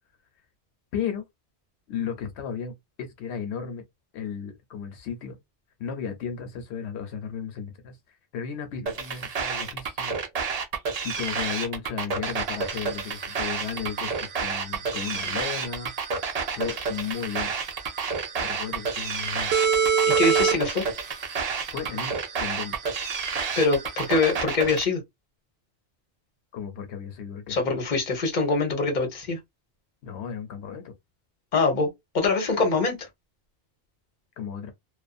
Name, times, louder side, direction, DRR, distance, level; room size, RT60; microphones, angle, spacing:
voice 1, 0.9-1.2 1.9-3.8 4.1-5.4 5.8-10.2 11.0-17.6 18.4-19.5 21.7-22.8 26.5-27.6 30.0-30.9 34.4-34.7, left 7 dB, 80° left, 0.9 m, -34 dB
sound 1, 8.9-24.9, right 5 dB, 45° right, 0.6 m, -30 dB
sound 2, 12.3-24.4, right 6 dB, 75° right, 0.8 m, -29 dB
voice 2, 20.1-20.9 23.6-25.0 27.5-29.4 31.5-31.9 32.1-33.1, left 3 dB, 45° left, 1.0 m, -24 dB
2.5 x 2.3 x 2.3 m
omnidirectional pair, 1.1 m